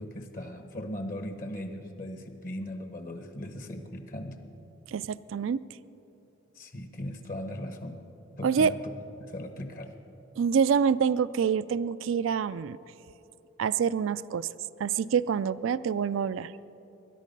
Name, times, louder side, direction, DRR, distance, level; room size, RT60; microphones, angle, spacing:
voice 1, 0.0-4.4 6.6-8.0 8.4-8.9 9.3-9.9, left 1 dB, 45° left, 6 dB, 1.0 m, -38 dB
voice 2, 4.9-5.6 8.4-8.7 10.4-12.8 13.6-14.5 14.8-16.5, right 7 dB, 80° right, 17 dB, 0.3 m, -26 dB
21.0 x 11.0 x 5.3 m, 3.0 s
head